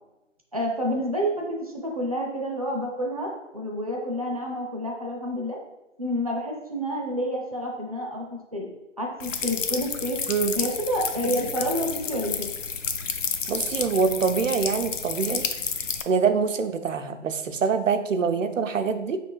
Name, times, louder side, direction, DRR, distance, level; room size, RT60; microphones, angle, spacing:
voice 1, 0.5-5.6 6.0-8.7 9.0-10.2 10.5-12.5, equal, 30° right, -1 dB, 0.5 m, -29 dB
sound 1, 9.2-16.0, left 6 dB, 85° left, 0.5 m, -30 dB
voice 2, 13.5-15.4 16.1-19.2, right 5 dB, 85° right, 8 dB, 0.5 m, -25 dB
4.9 x 3.2 x 2.2 m, 0.95 s
figure-of-eight pair, 160°, 37 cm